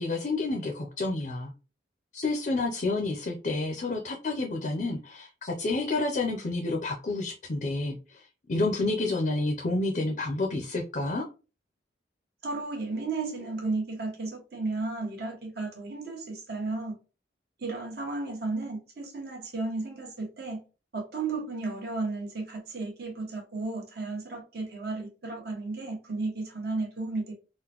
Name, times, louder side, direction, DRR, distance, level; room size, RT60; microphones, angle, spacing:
voice 1, 0.0-1.5 2.1-8.2 8.5-11.2, left 2 dB, 45° left, 0.5 m, -29 dB
voice 2, 12.4-17.0 17.6-20.6 20.9-27.3, right 3 dB, 60° right, 1.1 m, -33 dB
3.7 x 2.1 x 2.9 m
head